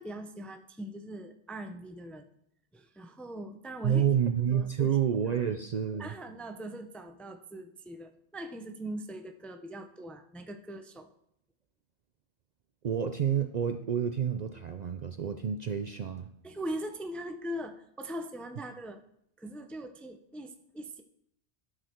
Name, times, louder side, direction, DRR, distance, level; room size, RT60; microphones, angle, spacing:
voice 1, 0.0-2.3 2.7-4.0 4.5-5.0 5.3-5.4 6.0-11.1 16.4-19.0 19.4-21.0, right 1 dB, ahead, 6 dB, 0.4 m, -41 dB
voice 2, 3.8-6.1 12.8-16.3, right 8 dB, 55° right, 8 dB, 0.5 m, -29 dB
12.0 x 6.5 x 4.4 m, 0.73 s
omnidirectional pair, 1.1 m